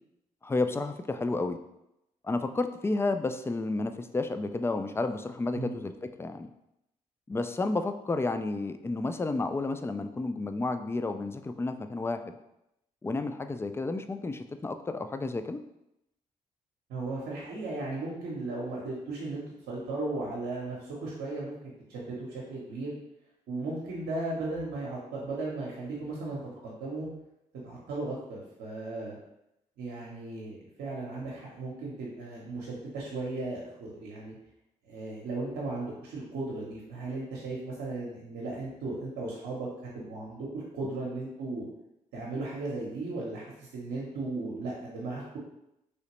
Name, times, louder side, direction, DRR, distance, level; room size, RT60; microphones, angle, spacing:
voice 1, 0.4-1.6 2.2-5.9 6.2-6.5 7.3-12.3 13.0-15.6, left 3 dB, 15° left, 9 dB, 0.3 m, -31 dB
voice 2, 16.9-23.0 23.5-27.1 27.6-29.2 29.8-34.3 34.8-39.7 39.9-41.7 42.1-45.4, right 2 dB, 80° right, -4 dB, 0.7 m, -36 dB
3.1 x 2.8 x 3.0 m, 0.84 s
supercardioid pair, 45°, 16 cm